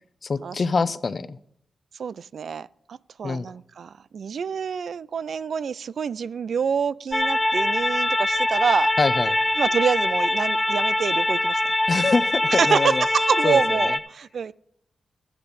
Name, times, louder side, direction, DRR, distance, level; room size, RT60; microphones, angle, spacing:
voice 1, 0.2-1.4 3.2-3.5 9.0-9.4 11.9-13.0 13.4-13.9, left 4 dB, 55° left, 14 dB, 0.7 m, -24 dB
voice 2, 2.0-8.9 9.6-11.7 12.5-14.5, right 6 dB, 70° right, 19 dB, 0.3 m, -26 dB
sound 1, 7.1-14.0, left 1 dB, 15° left, 1.6 m, -23 dB
12.5 x 10.5 x 4.1 m, 0.71 s
supercardioid pair, 40°, 0 cm